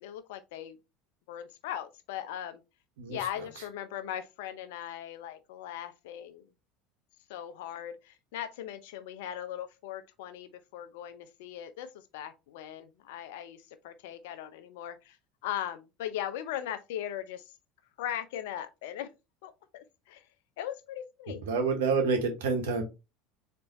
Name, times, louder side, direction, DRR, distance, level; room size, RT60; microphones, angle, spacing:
voice 1, 0.0-0.8 1.3-2.6 3.1-6.5 7.3-15.2 15.4-17.5 18.0-19.1 19.4-20.2 20.6-21.4, left 11 dB, 70° left, 0.6 m, -39 dB
voice 2, 21.4-22.8, right 4 dB, 75° right, 1.2 m, -28 dB
4.0 x 3.2 x 2.9 m
hypercardioid pair, 75°, 0 cm